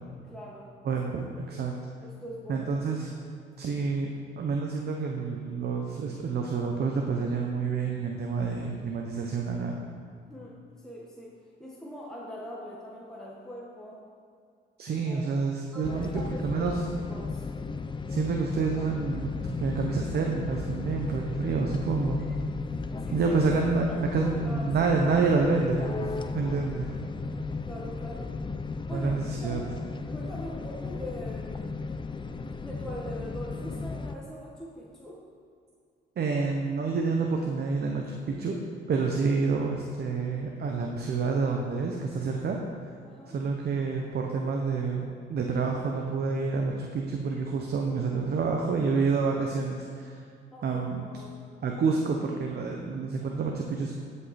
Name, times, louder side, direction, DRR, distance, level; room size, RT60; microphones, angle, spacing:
voice 1, 0.3-0.7 1.5-1.7 2.0-2.7 10.3-10.6 10.8-14.0 15.1-15.3 15.7-16.8 17.1-17.5 22.2-22.3 22.6-22.7 23.0-23.3 23.9-24.9 26.5-26.7 27.6-28.3 28.9-29.1 29.4-29.7 30.1-31.8 32.6-35.2 43.0-43.4 50.5-51.4, equal, 5° left, -5 dB, 1.4 m, -42 dB
voice 2, 0.8-1.2 1.5-1.8 2.5-3.1 3.6-4.1 4.4-9.8 14.8-16.8 18.1-22.3 23.1-26.9 28.9-29.6 36.2-38.6 38.9-42.6 43.3-50.2 50.6-51.0 51.6-53.9, right 4 dB, 55° right, 1 dB, 0.9 m, -28 dB
sound 1, 15.8-34.2, left 4 dB, 25° left, 0.5 m, -35 dB
14.0 x 5.5 x 4.2 m, 2.3 s
cardioid pair, 90°, 20 cm